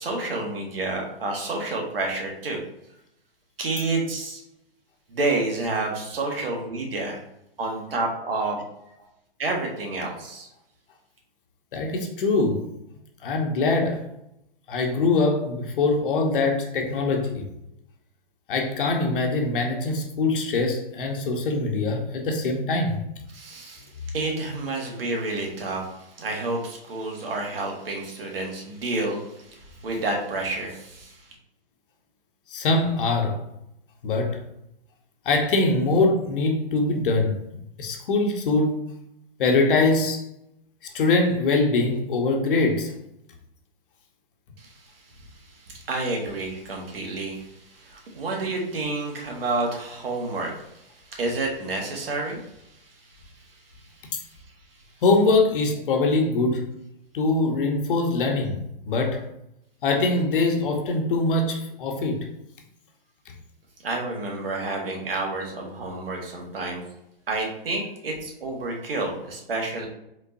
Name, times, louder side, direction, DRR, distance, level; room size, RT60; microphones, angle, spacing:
voice 1, 0.0-2.6 3.6-4.4 5.1-7.2 7.6-8.6 9.4-10.5 23.3-31.3 44.6-45.1 45.4-53.4 63.8-66.8 67.3-69.9, right 2 dB, 75° right, 1.6 m, -30 dB
voice 2, 11.7-12.7 13.2-14.0 14.7-17.5 18.5-23.0 32.5-33.5 34.0-34.4 35.2-37.4 37.8-38.8 39.4-40.2 40.9-42.9 54.1-54.2 55.0-56.6 57.1-59.2 59.8-62.3, left 3 dB, 65° left, 1.1 m, -23 dB
5.3 x 3.7 x 2.6 m
hypercardioid pair, 125°, 29 cm